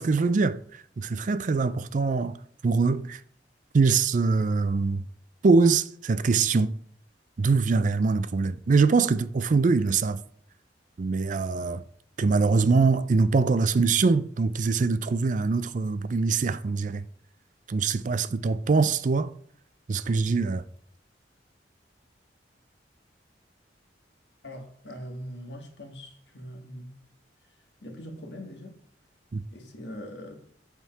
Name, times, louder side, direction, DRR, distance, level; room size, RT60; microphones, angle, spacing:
voice 1, 0.0-2.4 2.6-3.2 3.7-5.1 5.4-6.7 7.4-10.2 11.0-11.8 12.2-17.0 17.7-19.3 19.9-20.6 29.3-29.4, right 4 dB, 45° right, 0.4 m, -23 dB
voice 2, 24.4-27.0 27.8-28.8 29.5-30.5, equal, 70° left, 1.6 m, -41 dB
8.2 x 3.6 x 5.6 m
head